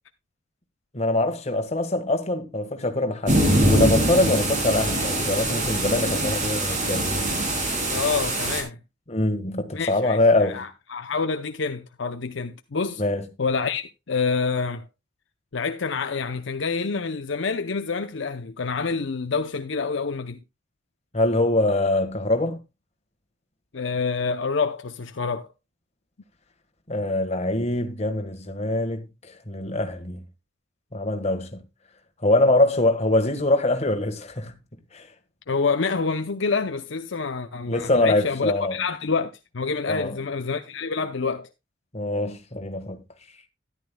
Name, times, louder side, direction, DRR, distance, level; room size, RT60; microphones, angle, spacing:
voice 1, 0.9-7.1 9.1-10.6 13.0-13.2 21.1-22.6 26.9-30.2 30.9-31.6 32.2-34.5 34.9-35.1 37.7-38.8 39.9-40.2 41.9-43.0, left 2 dB, 35° left, 1.6 m, -23 dB
sound 1, 3.3-8.6, right 1 dB, 40° right, 3.3 m, -23 dB
voice 2, 7.9-8.8 9.7-13.0 13.4-14.8 15.5-20.4 23.7-25.5 35.5-41.5, left 4 dB, 65° left, 0.7 m, -27 dB
13.5 x 11.0 x 2.3 m
head